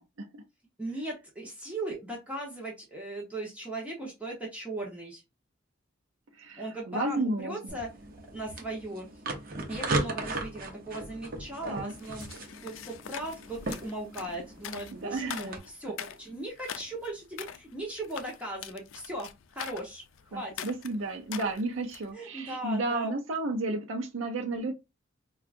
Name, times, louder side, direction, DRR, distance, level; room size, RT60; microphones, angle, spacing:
voice 1, 0.8-5.2 6.6-7.9 8.3-9.2 9.7-12.3 12.6-20.0 20.3-20.7 22.1-23.1, right 2 dB, 5° right, 0.9 m, -38 dB
voice 2, 6.3-7.7 11.6-11.9 14.9-15.5 20.3-24.7, right 2 dB, 80° right, 0.6 m, -33 dB
sound 1, 7.7-15.6, right 2 dB, 50° right, 0.8 m, -37 dB
sound 2, 11.9-22.1, left 9 dB, 80° left, 0.4 m, -44 dB
4.5 x 2.3 x 2.5 m
head